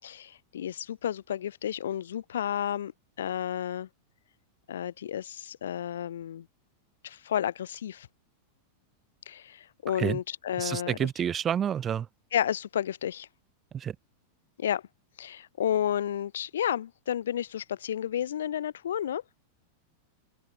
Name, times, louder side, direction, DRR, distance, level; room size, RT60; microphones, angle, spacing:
voice 1, 0.0-2.9 3.2-3.9 4.7-6.5 7.0-8.1 9.3-11.1 12.3-13.3 14.6-14.8 15.2-19.2, left 10 dB, 65° left, 4.3 m, -31 dB
voice 2, 10.6-12.1 13.7-13.9, right 8 dB, 25° right, 2.4 m, -29 dB
open air
figure-of-eight pair, 90°, 0 cm